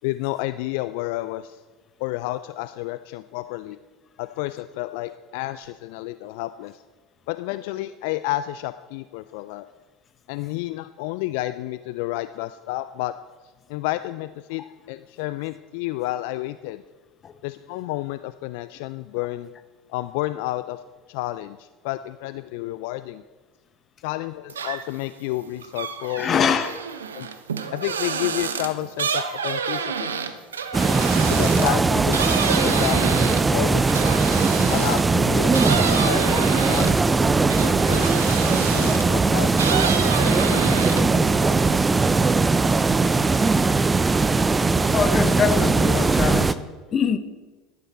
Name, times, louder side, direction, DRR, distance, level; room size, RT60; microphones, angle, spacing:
voice 1, 0.0-1.6 2.0-3.8 4.2-6.8 7.3-9.7 10.3-13.1 13.7-16.8 17.4-19.5 19.9-20.8 21.1-23.2 24.0-26.3 27.1-27.3 27.7-30.1 31.3-32.3 32.6-34.2 34.7-38.1 38.5-41.7, left 17 dB, 65° left, 13 dB, 0.3 m, -31 dB
sound 1, 24.5-25.0 25.4-35.1 35.5-39.2 39.5-41.2 41.6-42.2, right 6 dB, 85° right, 0.7 m, -28 dB
voice 2, 26.2-26.8 44.9-46.6 46.9-47.2, left 7 dB, 40° left, 12 dB, 0.8 m, -23 dB
sound 2, 30.7-46.5, right 3 dB, 20° right, 0.5 m, -20 dB
12.0 x 11.0 x 4.2 m, 1.3 s
hypercardioid pair, 75°, 0 cm